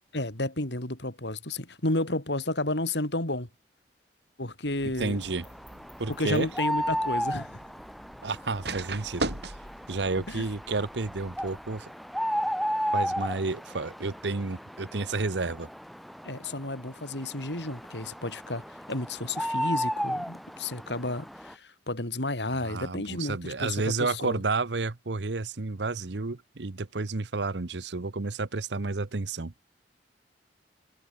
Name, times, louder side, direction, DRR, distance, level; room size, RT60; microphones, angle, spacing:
voice 1, 0.1-3.5 4.4-5.2 6.2-7.6 10.3-10.4 16.2-24.4, left 2 dB, 80° left, 4.3 m, -32 dB
sound 1, 4.7-11.8, right 2 dB, 70° right, 6.1 m, -40 dB
voice 2, 5.0-5.4 6.0-6.5 8.2-9.3 9.9-11.9 12.9-15.7 22.6-29.5, right 3 dB, 85° right, 1.0 m, -31 dB
sound 2, 5.2-21.5, equal, ahead, 1.9 m, -34 dB
head